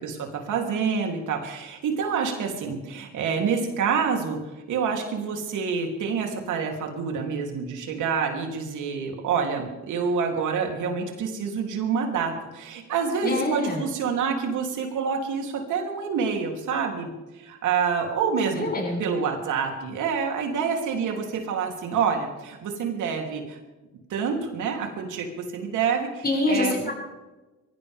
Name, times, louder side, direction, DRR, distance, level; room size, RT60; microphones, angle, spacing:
voice 1, 0.0-4.4 4.7-18.7 19.0-23.6 24.1-26.9, right 6 dB, 80° right, 2 dB, 3.4 m, -27 dB
voice 2, 13.2-13.8 18.6-19.0 26.2-26.9, left 2 dB, 30° left, -1 dB, 7.2 m, -25 dB
23.0 x 16.0 x 3.7 m, 1.1 s
cardioid pair, 90°, 30 cm